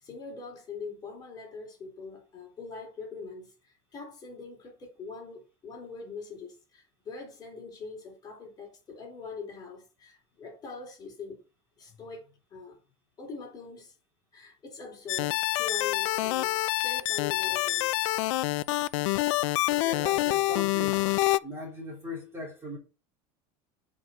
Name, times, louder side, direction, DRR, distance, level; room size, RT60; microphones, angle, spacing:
voice 1, 0.0-11.4 11.8-12.8 13.2-13.9 14.3-18.2, left 4 dB, 25° left, 4.2 m, -43 dB
sound 1, 15.1-21.4, left 19 dB, 80° left, 0.5 m, -27 dB
voice 2, 19.7-21.0 21.4-22.8, left 1 dB, 15° right, 3.2 m, -39 dB
8.6 x 4.9 x 6.2 m
supercardioid pair, 155°, 16 cm